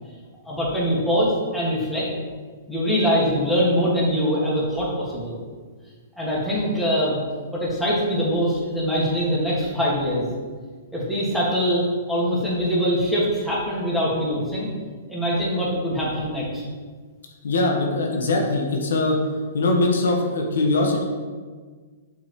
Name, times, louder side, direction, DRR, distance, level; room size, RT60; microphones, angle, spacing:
voice 1, 0.4-2.1 2.7-5.3 6.2-7.2 7.5-10.3 10.9-14.7 15.1-16.6, equal, 5° left, -7 dB, 1.8 m, -23 dB
voice 2, 17.4-19.2 19.5-21.0, left 2 dB, 85° left, 1 dB, 1.2 m, -21 dB
7.0 x 5.1 x 3.1 m, 1.5 s
hypercardioid pair, 145°, 0 cm